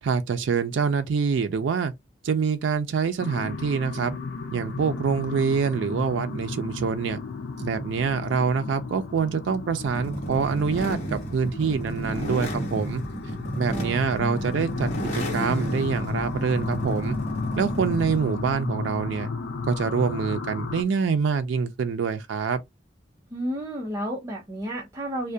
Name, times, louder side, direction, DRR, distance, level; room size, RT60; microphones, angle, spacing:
voice 1, 0.0-1.9 2.2-4.2 4.5-7.2 7.6-13.0 13.6-17.2 17.6-19.3 19.7-22.6, right 5 dB, 90° right, 0.4 m, -25 dB
sound 1, 3.2-20.8, left 4 dB, 90° left, 0.4 m, -34 dB
sound 2, 9.8-18.3, right 1 dB, 40° left, 0.9 m, -32 dB
voice 2, 13.7-14.5 23.3-25.3, equal, 15° right, 0.5 m, -32 dB
2.2 x 2.1 x 2.6 m
head